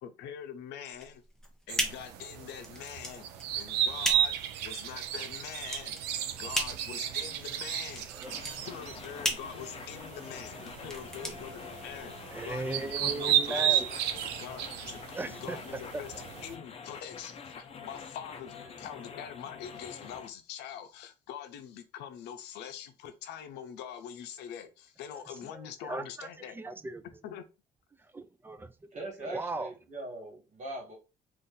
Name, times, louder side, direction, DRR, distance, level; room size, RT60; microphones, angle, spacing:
voice 1, 0.0-1.2 1.7-6.0 6.3-8.2 8.5-12.1 12.4-13.8 14.4-15.0 15.3-26.6 27.2-27.4, left 9 dB, 85° left, 0.6 m, -44 dB
sound 1, 0.9-12.2, equal, 5° left, 0.8 m, -37 dB
sound 2, 1.7-16.5, right 10 dB, 90° right, 0.4 m, -34 dB
sound 3, 8.2-20.3, left 6 dB, 35° left, 0.6 m, -46 dB
voice 2, 12.3-13.9 15.1-15.6 25.8-26.3 26.5-27.0 28.1-28.7 29.2-29.7, right 2 dB, 15° right, 0.3 m, -37 dB
voice 3, 28.9-30.9, right 1 dB, 45° right, 1.6 m, -41 dB
2.6 x 2.6 x 3.8 m
cardioid pair, 110°, 17 cm